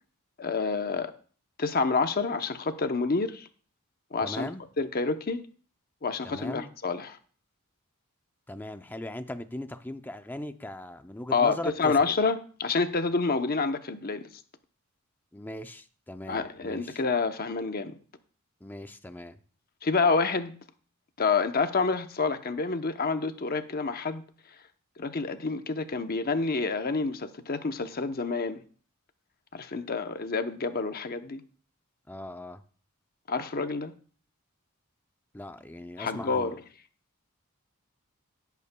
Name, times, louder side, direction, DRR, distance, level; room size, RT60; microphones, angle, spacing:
voice 1, 0.4-1.1 1.6-3.5 4.1-4.5 4.8-5.4 6.0-7.2 11.3-14.3 16.3-17.9 19.8-20.5 21.2-24.2 25.0-28.6 29.5-31.4 33.3-33.9 36.0-36.5, left 4 dB, 45° left, 0.8 m, -28 dB
voice 2, 4.2-4.6 6.2-6.7 8.5-12.1 15.3-17.0 18.6-19.4 32.1-32.6 35.3-36.6, left 1 dB, 10° left, 0.5 m, -39 dB
17.5 x 8.3 x 2.3 m
head